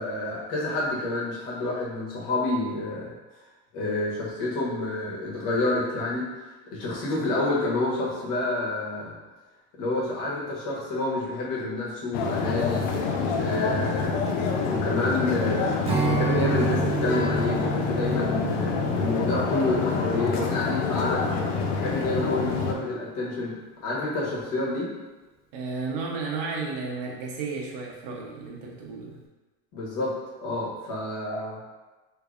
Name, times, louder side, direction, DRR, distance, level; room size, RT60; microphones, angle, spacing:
voice 1, 0.0-3.1 3.7-9.2 9.8-12.9 13.4-14.2 14.6-21.2 21.7-23.6 23.8-24.9 29.7-31.6, left 2 dB, 60° left, -6 dB, 1.4 m, -29 dB
sound 1, 12.1-22.7, left 4 dB, 80° left, 0.6 m, -27 dB
Strum, 15.8-21.3, right 4 dB, 15° right, 0.5 m, -31 dB
Guitar, 17.1-20.3, right 1 dB, 5° left, 0.8 m, -41 dB
voice 2, 25.5-29.2, right 4 dB, 60° right, -2 dB, 0.9 m, -33 dB
3.3 x 3.2 x 2.5 m, 1.2 s
supercardioid pair, 120°, 38 cm